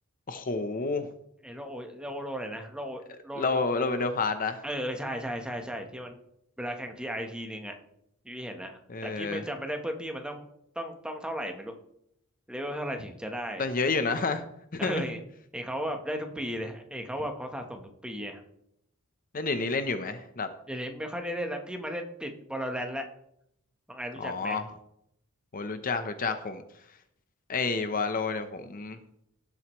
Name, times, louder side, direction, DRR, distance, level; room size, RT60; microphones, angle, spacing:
voice 1, 0.3-1.1 3.4-4.6 8.9-9.4 13.6-14.4 14.7-15.1 19.3-20.5 24.2-24.6 25.5-26.6 27.5-29.0, left 4 dB, 40° left, 9 dB, 0.8 m, -29 dB
voice 2, 1.4-3.5 4.6-6.2 6.6-7.8 8.2-10.5 10.7-11.7 12.5-13.7 14.8-15.2 15.5-18.4 20.7-23.1 23.9-24.6, equal, 5° right, 4 dB, 1.1 m, -35 dB
17.5 x 7.8 x 3.1 m, 0.74 s
head